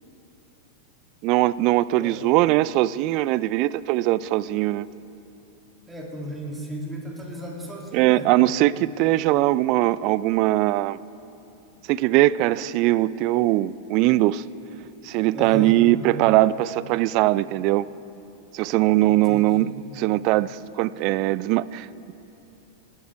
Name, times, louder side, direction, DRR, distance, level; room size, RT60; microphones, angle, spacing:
voice 1, 1.2-4.9 7.9-11.0 11.9-14.4 15.0-17.9 18.5-19.7 19.9-22.1, right 16 dB, 40° right, 20 dB, 0.3 m, -21 dB
voice 2, 5.9-8.3 15.3-15.8 19.1-19.5, equal, 10° right, -1 dB, 2.7 m, -35 dB
19.5 x 12.0 x 4.7 m, 2.9 s
figure-of-eight pair, 90°, 0 cm